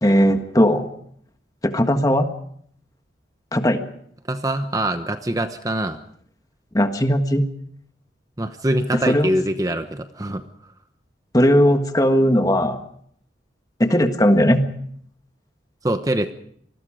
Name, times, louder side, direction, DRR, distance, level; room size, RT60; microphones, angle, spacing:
voice 1, 0.0-0.9 1.6-2.3 3.5-3.8 6.7-7.5 9.1-9.3 11.3-12.8 13.8-14.6, equal, 20° left, 7 dB, 1.6 m, -17 dB
voice 2, 4.3-6.0 8.4-10.4 15.8-16.3, right 1 dB, 20° right, 8 dB, 0.9 m, -23 dB
26.5 x 20.5 x 5.0 m, 0.66 s
head